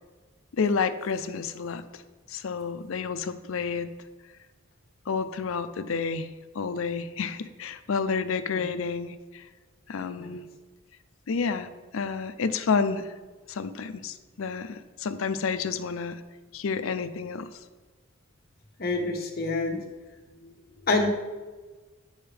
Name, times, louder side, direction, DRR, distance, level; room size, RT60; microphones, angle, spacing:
voice 1, 0.5-2.0 2.3-3.9 5.1-6.3 6.5-9.5 9.9-10.4 11.3-13.1 13.5-16.2 16.5-17.6, left 5 dB, 75° left, 11 dB, 0.5 m, -30 dB
voice 2, 18.8-19.8 20.4-20.5 20.8-21.1, left 3 dB, 45° left, 1 dB, 1.1 m, -27 dB
8.8 x 6.4 x 3.4 m, 1.3 s
head